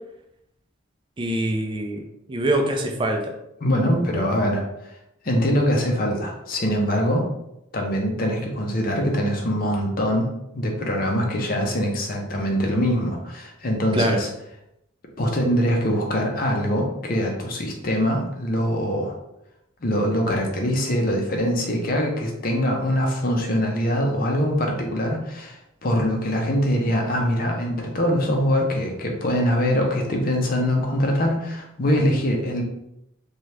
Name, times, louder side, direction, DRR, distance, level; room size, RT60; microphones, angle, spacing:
voice 1, 1.2-2.0 2.3-3.3 13.9-14.2, right 1 dB, 25° right, 3 dB, 0.3 m, -23 dB
voice 2, 3.6-4.6 5.2-7.3 7.7-10.3 10.5-14.3 15.2-19.2 19.8-32.6, equal, 45° left, 1 dB, 0.5 m, -23 dB
2.8 x 2.3 x 3.2 m, 0.84 s
head